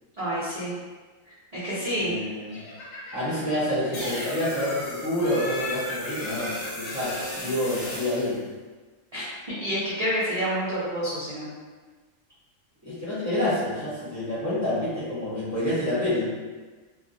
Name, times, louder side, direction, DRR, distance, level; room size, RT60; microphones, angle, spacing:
voice 1, 0.2-0.7 1.5-2.2 9.1-9.3 9.6-11.5, equal, 50° right, -10 dB, 0.4 m, -28 dB
voice 2, 2.0-2.6 3.1-8.4 12.8-16.3, left 1 dB, 15° left, -12 dB, 0.7 m, -28 dB
Laughter, 2.5-3.6 3.9-4.8 5.2-8.0, left 2 dB, 90° left, 1.0 m, -39 dB
sound 1, 3.9-8.3, left 1 dB, 50° left, 0.8 m, -35 dB
2.2 x 2.1 x 2.6 m, 1.4 s
omnidirectional pair, 1.3 m